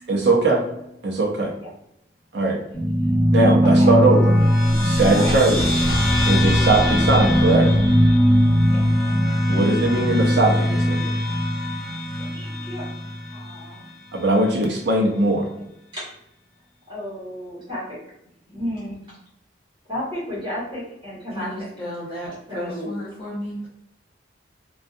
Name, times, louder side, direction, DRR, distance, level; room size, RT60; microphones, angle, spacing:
voice 1, 0.1-1.5 2.3-2.6 3.3-4.3 4.8-5.6 6.2-7.7 9.5-11.1 14.1-15.5, right 2 dB, 60° right, -1 dB, 0.6 m, -20 dB
sound 1, 2.7-13.5, equal, ahead, 1.1 m, -19 dB
voice 2, 3.6-3.9 5.1-5.4 8.7-8.8 12.2-12.9 13.3-13.8 15.3-15.5 15.9-16.1 16.9-18.0 18.5-19.1 19.9-21.5 22.5-22.9, left 1 dB, 25° right, -9 dB, 1.0 m, -32 dB
sound 2, 4.3-10.5, equal, 75° left, 0.6 m, -30 dB
voice 3, 21.3-23.7, equal, 20° left, -9 dB, 0.6 m, -33 dB
2.6 x 2.3 x 2.3 m, 0.81 s
head